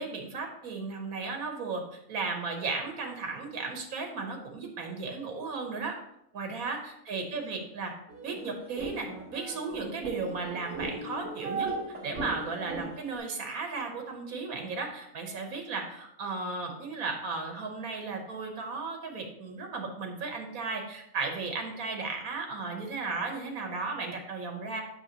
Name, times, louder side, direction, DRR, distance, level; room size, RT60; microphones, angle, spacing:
voice 1, 0.0-6.0 6.3-7.9 8.2-11.7 12.0-24.8, right 4 dB, 80° right, 3 dB, 1.5 m, -35 dB
sound 1, 8.1-13.2, right 3 dB, 55° right, 2.1 m, -38 dB
8.8 x 6.0 x 2.9 m, 0.80 s
omnidirectional pair, 1.5 m